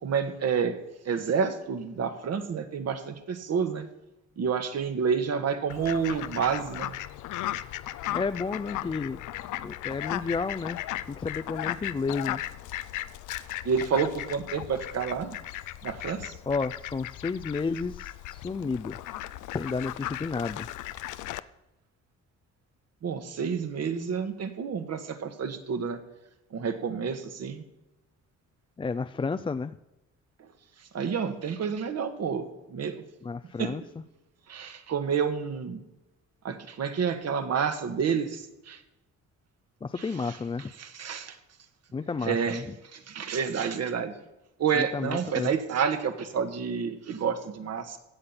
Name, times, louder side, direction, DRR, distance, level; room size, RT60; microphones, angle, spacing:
voice 1, 0.0-0.7 1.0-3.8 4.4-6.9 13.6-15.4 15.8-16.3 23.0-26.0 26.5-27.6 30.4-30.5 30.9-33.0 33.6-33.7 34.5-35.8 36.4-38.8 40.0-40.4 40.8-41.4 42.2-42.6 42.9-44.2 44.6-48.0, right 6 dB, 55° right, 8 dB, 1.6 m, -29 dB
Fowl, 5.7-21.4, left 14 dB, 80° left, 0.6 m, -36 dB
voice 2, 8.1-9.2 9.6-10.8 11.1-12.4 16.5-19.0 19.5-20.7 28.8-29.8 33.2-33.8 39.8-40.7 41.9-42.7 44.7-45.5, left 4 dB, 15° left, 9 dB, 0.4 m, -31 dB
16.0 x 7.9 x 5.8 m, 0.95 s
cardioid pair, 90°, 30 cm